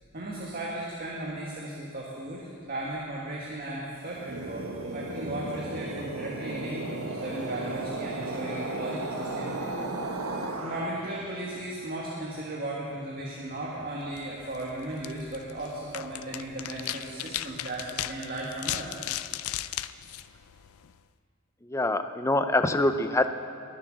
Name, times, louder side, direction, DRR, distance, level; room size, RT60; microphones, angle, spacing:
voice 1, 0.1-9.8 10.6-19.0, right 1 dB, 45° right, -4 dB, 1.8 m, -36 dB
sound 1, 4.0-11.4, right 2 dB, 90° right, 1.5 m, -35 dB
sound 2, 14.0-21.0, left 13 dB, 85° left, 0.4 m, -37 dB
voice 2, 21.6-23.3, left 2 dB, 15° left, 9 dB, 0.5 m, -25 dB
22.0 x 7.5 x 6.5 m, 2.4 s
head